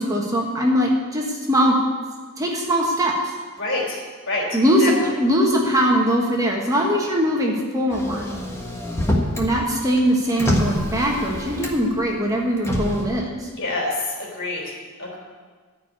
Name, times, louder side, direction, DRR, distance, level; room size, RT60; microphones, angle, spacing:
voice 1, 0.0-1.7 2.4-3.3 4.5-8.4 9.4-13.5, equal, 15° right, -2 dB, 1.4 m, -21 dB
voice 2, 3.6-4.0 4.3-4.5 4.8-4.9 13.6-13.9 14.2-14.6 15.0-15.2, left 2 dB, 55° left, -1 dB, 3.5 m, -26 dB
Motor vehicle (road), 7.9-9.5 9.8-12.0 12.6-13.0, left 1 dB, 10° left, 1.4 m, -25 dB
14.0 x 5.0 x 9.3 m, 1.5 s
head